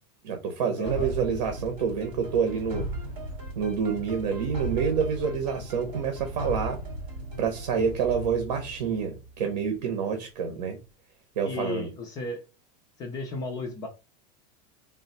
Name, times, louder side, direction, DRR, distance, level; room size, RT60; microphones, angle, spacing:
voice 1, 0.2-2.8 3.6-6.8 7.4-10.8 11.4-11.9, right 6 dB, 65° right, 1.0 m, -28 dB
voice 2, 0.8-1.1 11.4-12.4 13.0-13.9, left 3 dB, 20° left, 0.4 m, -34 dB
sound 1, 0.9-9.7, right 1 dB, 25° right, 2.1 m, -37 dB
3.9 x 2.1 x 4.1 m
supercardioid pair, 180°, 21 cm